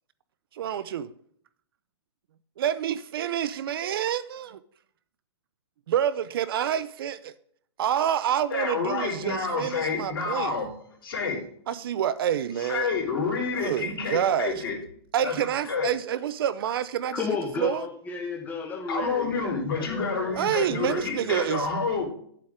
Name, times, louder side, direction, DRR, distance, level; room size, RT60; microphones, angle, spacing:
voice 1, 0.5-1.1 2.6-4.6 5.9-7.3 7.8-10.6 11.7-12.9 13.6-14.6 15.1-17.3 17.6-17.9 20.3-21.7, right 10 dB, 55° right, 0.6 m, -27 dB
voice 2, 8.5-10.7 11.0-11.4 12.6-14.8 15.2-15.3 15.7-15.9 18.9-22.0, left 4 dB, 55° left, 3.8 m, -28 dB
voice 3, 17.1-21.5, left 5 dB, 10° left, 1.3 m, -34 dB
10.5 x 7.6 x 3.6 m
hypercardioid pair, 140°, 14 cm